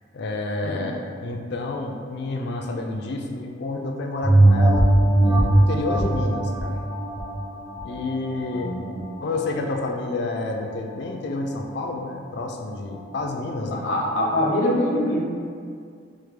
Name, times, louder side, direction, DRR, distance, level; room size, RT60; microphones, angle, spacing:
voice 1, 0.1-4.9 5.2-6.8 7.8-8.7 9.2-13.9, left 2 dB, 60° left, 2 dB, 0.4 m, -29 dB
sound 1, 4.2-9.2 9.7-9.8, right 1 dB, 15° right, 0.5 m, -20 dB
voice 2, 8.5-8.9 13.6-15.2, left 1 dB, 80° left, -4 dB, 0.7 m, -24 dB
4.6 x 2.1 x 3.2 m, 2.2 s
head